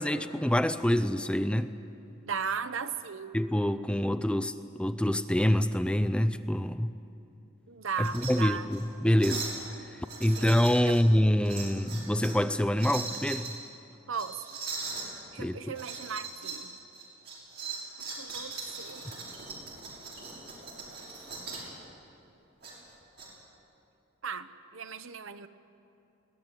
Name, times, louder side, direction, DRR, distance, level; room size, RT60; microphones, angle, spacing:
voice 1, 0.0-1.7 3.3-6.9 8.0-9.5 10.0-13.5 15.4-15.7, left 1 dB, 5° left, 11 dB, 0.4 m, -26 dB
voice 2, 2.2-3.3 7.7-8.7 10.4-10.5 10.8-11.1 14.1-14.5 15.3-16.7 18.2-19.1 24.2-25.5, right 6 dB, 75° right, 11 dB, 0.9 m, -36 dB
sound 1, 7.9-8.3 8.7-8.8 9.2-9.6 10.0-11.0 11.4-12.4 12.7-13.5 14.1-15.1 15.7-16.6 16.9-21.7 22.6-23.3, right 4 dB, 50° right, 6.0 m, -39 dB
22.0 x 17.5 x 9.0 m, 2.7 s
head